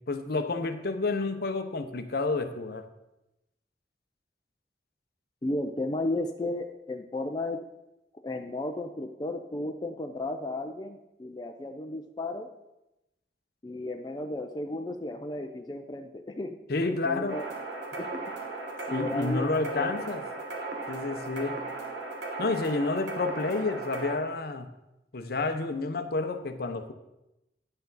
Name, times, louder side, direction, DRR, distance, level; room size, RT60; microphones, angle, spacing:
voice 1, 0.1-2.8 16.7-17.4 18.9-20.2 20.9-21.6 22.4-24.7 25.1-26.9, left 3 dB, 60° left, 8 dB, 0.7 m, -30 dB
voice 2, 5.4-7.6 8.2-12.5 13.6-16.6 16.9-17.5 18.0-18.2 18.9-20.1, left 2 dB, 25° left, 4 dB, 0.5 m, -34 dB
sound 1, 17.3-24.1, right 3 dB, 80° right, 1.3 m, -36 dB
9.7 x 6.7 x 4.0 m, 0.93 s
head